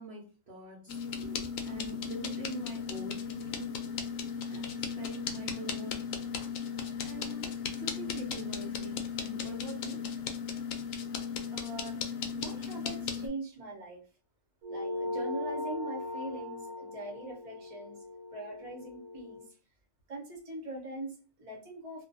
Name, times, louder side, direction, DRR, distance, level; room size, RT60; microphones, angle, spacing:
voice 1, 0.0-1.0 1.6-3.8 4.5-6.1 7.0-10.1, right 2 dB, 55° right, -4 dB, 0.8 m, -44 dB
sound 1, 0.9-13.3, left 6 dB, 75° left, 0.9 m, -36 dB
voice 2, 1.2-1.5 5.7-5.8 11.5-12.0 12.3-14.0 14.7-18.0 18.3-19.4 20.1-22.0, right 2 dB, 30° right, -2 dB, 0.8 m, -42 dB
sound 2, 14.6-19.4, left 2 dB, 90° right, 1.1 m, -39 dB
2.5 x 2.2 x 2.5 m, 0.36 s
omnidirectional pair, 1.5 m